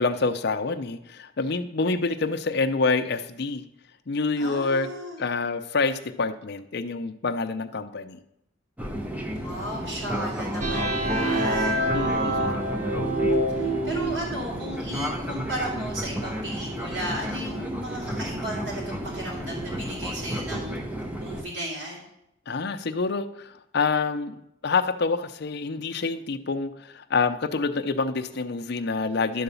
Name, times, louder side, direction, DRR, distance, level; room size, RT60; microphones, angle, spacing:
voice 1, 0.0-3.6 4.1-4.9 5.2-8.2 11.9-12.5 22.5-24.4 24.6-29.4, left 4 dB, 60° left, 9 dB, 0.6 m, -27 dB
voice 2, 4.4-5.2 9.3-12.5 13.5-20.9 21.2-22.0, equal, 75° right, -9 dB, 3.1 m, -35 dB
Fixed-wing aircraft airplane, 8.8-21.4, equal, 10° right, 0.8 m, -32 dB
sound 1, 10.6-14.4, right 1 dB, 40° right, 1.0 m, -26 dB
11.0 x 4.0 x 6.9 m, 0.80 s
head